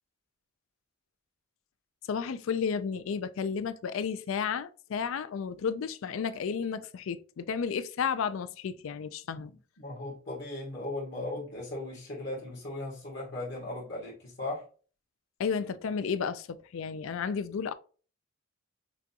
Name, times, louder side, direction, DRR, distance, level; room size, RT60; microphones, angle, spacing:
voice 1, 2.1-9.5 15.4-17.7, left 6 dB, 70° left, 0.4 m, -32 dB
voice 2, 9.3-14.6, left 2 dB, 55° left, 1.6 m, -38 dB
6.1 x 2.3 x 2.8 m
head